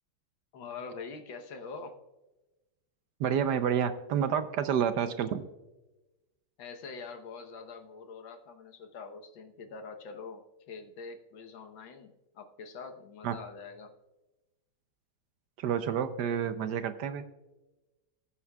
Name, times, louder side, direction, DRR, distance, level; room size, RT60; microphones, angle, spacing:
voice 1, 0.5-2.0 6.6-13.9, left 4 dB, 80° left, 5 dB, 1.7 m, -44 dB
voice 2, 3.2-5.4 13.2-13.3 15.6-17.2, right 8 dB, 70° right, 11 dB, 1.1 m, -29 dB
20.0 x 8.4 x 2.3 m, 1.0 s
omnidirectional pair, 2.1 m